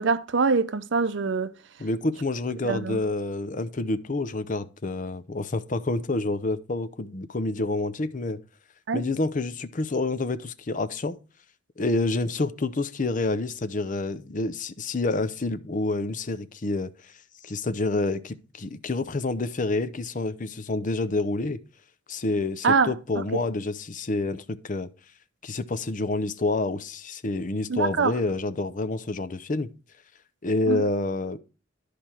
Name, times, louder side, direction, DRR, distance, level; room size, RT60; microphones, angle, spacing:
voice 1, 0.0-1.5 2.6-3.0 8.9-9.1 22.6-23.2 27.7-28.1 30.7-30.8, right 4 dB, 65° right, 0.6 m, -24 dB
voice 2, 1.8-8.4 8.9-11.2 11.8-16.9 17.4-21.6 22.1-24.9 25.4-29.7 30.4-31.4, left 2 dB, 40° left, 0.7 m, -28 dB
11.0 x 5.0 x 4.3 m
head